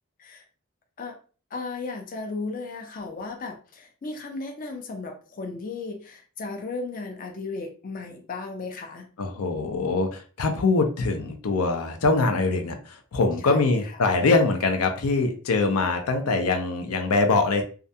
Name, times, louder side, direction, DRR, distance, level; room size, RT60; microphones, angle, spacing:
voice 1, 1.5-9.1 13.4-13.7, left 3 dB, 40° left, 3 dB, 0.4 m, -35 dB
voice 2, 9.2-17.6, left 3 dB, 90° left, 5 dB, 0.5 m, -23 dB
2.4 x 2.2 x 2.6 m, 0.38 s
head